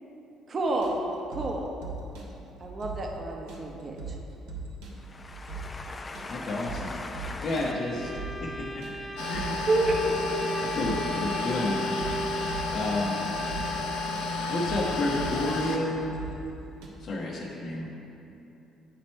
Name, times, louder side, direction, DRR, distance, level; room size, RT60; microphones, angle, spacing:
voice 1, 0.5-1.0 1.3-1.7 2.6-4.2 9.7-10.2, right 2 dB, 40° right, 0 dB, 0.8 m, -28 dB
sound 1, 0.6-16.9, right 3 dB, 85° right, 0.9 m, -41 dB
voice 2, 5.0-7.7, left 3 dB, 30° left, 5 dB, 0.5 m, -40 dB
voice 3, 6.3-7.0 7.4-8.1 8.4-8.8 9.3-9.6 10.5-11.8 12.7-13.2 14.5-16.1 17.0-17.9, left 2 dB, 55° left, -4 dB, 0.9 m, -30 dB
Bowed string instrument, 7.5-14.1, right 1 dB, ahead, 0.8 m, -38 dB
sound 2, 9.2-15.8, left 3 dB, 80° left, 0.6 m, -32 dB
9.3 x 3.2 x 4.3 m, 2.8 s
supercardioid pair, 65°, 0 cm